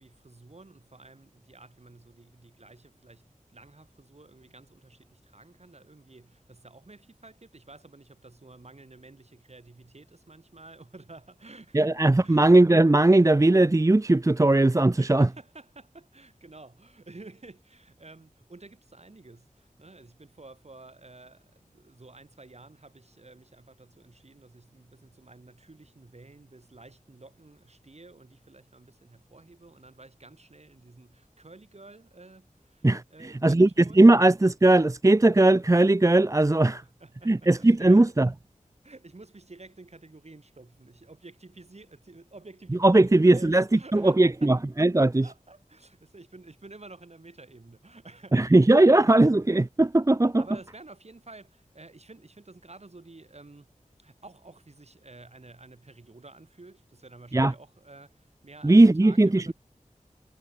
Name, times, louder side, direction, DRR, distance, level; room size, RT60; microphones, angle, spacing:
voice 1, 0.0-12.5 15.0-34.0 36.8-38.1 38.8-44.6 45.2-49.2 50.4-53.7 54.0-59.5, right 2 dB, 50° right, 5.3 m, -50 dB
voice 2, 11.7-15.3 32.8-33.7 33.9-36.8 37.3-38.3 42.8-45.3 48.3-50.4 57.3-57.5 58.6-59.5, right 2 dB, 25° right, 0.7 m, -19 dB
wide cardioid pair, 65°, 14 cm